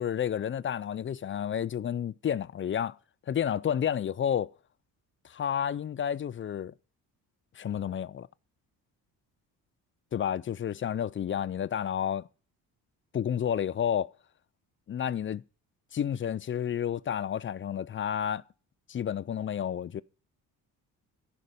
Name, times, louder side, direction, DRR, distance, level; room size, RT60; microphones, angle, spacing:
voice 1, 0.0-3.0 3.3-4.5 5.2-6.7 7.6-8.3 10.1-12.3 13.1-14.1 14.9-15.4 15.9-18.4 18.9-20.0, left 9 dB, 30° left, 0.4 m, -30 dB
11.0 x 5.1 x 6.9 m
hypercardioid pair, 50°, 46 cm